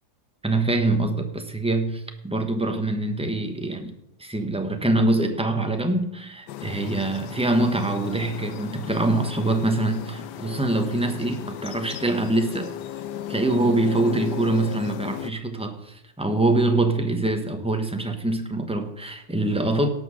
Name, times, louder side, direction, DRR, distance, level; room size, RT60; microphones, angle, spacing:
voice 1, 0.4-3.9 4.2-12.7 13.3-19.9, right 2 dB, 5° right, 0.7 m, -24 dB
forest near armhem, 6.5-15.3, left 11 dB, 75° left, 1.2 m, -35 dB
18.0 x 6.1 x 6.4 m
omnidirectional pair, 2.0 m